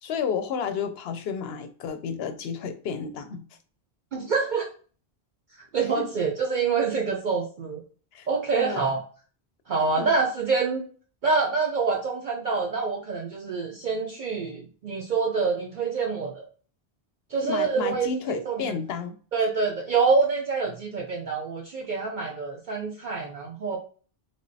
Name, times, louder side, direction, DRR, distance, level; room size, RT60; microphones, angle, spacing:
voice 1, 0.0-3.4 6.0-6.1 8.1-8.3 8.5-8.8 10.0-10.2 17.4-19.1, left 6 dB, 80° left, 8 dB, 0.8 m, -31 dB
voice 2, 4.1-4.7 5.7-7.8 8.3-9.0 9.7-10.8 11.2-16.5 17.3-18.1 18.5-18.7 19.3-23.8, right 4 dB, 55° right, 0 dB, 0.7 m, -26 dB
3.3 x 2.9 x 2.7 m, 0.41 s
omnidirectional pair, 1.0 m